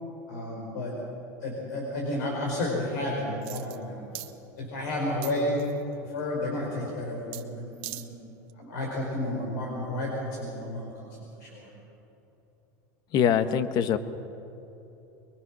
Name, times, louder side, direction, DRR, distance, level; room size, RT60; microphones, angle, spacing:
voice 1, 0.3-1.0 1.4-4.2 4.6-5.6 6.0-8.1 8.6-10.9 11.4-11.7, left 1 dB, 80° left, -2 dB, 5.1 m, -31 dB
sound 1, 3.4-3.8 4.1-4.3 5.2-5.8 7.3-7.4 7.7-8.1 8.5-8.6, right 18 dB, 65° right, 1.3 m, -39 dB
voice 2, 13.1-14.0, left 8 dB, 50° left, 11 dB, 1.3 m, -23 dB
23.0 x 22.5 x 6.3 m, 3.0 s
supercardioid pair, 110°, 9 cm